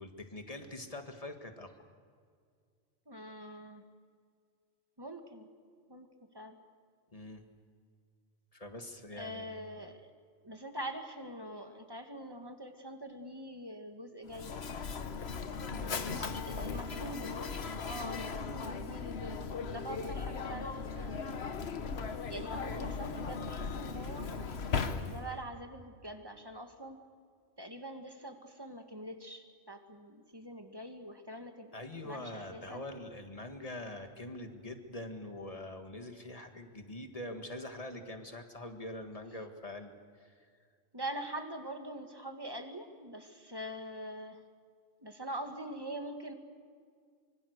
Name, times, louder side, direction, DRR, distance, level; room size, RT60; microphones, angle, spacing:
voice 1, 0.0-1.7 7.1-7.4 8.5-9.6 15.5-16.8 31.7-40.5, left 1 dB, 35° left, 6 dB, 1.9 m, -44 dB
voice 2, 3.1-3.8 5.0-5.5 5.9-6.1 6.3-6.6 9.1-10.0 10.4-14.5 16.4-21.5 22.3-24.5 25.0-27.0 27.6-32.9 40.9-44.4 45.0-46.3, right 1 dB, 20° right, 5 dB, 1.9 m, -44 dB
Mechanisms, 14.3-25.4, left 5 dB, 70° left, 1.4 m, -38 dB
25.0 x 24.0 x 6.6 m, 2.1 s
omnidirectional pair, 1.1 m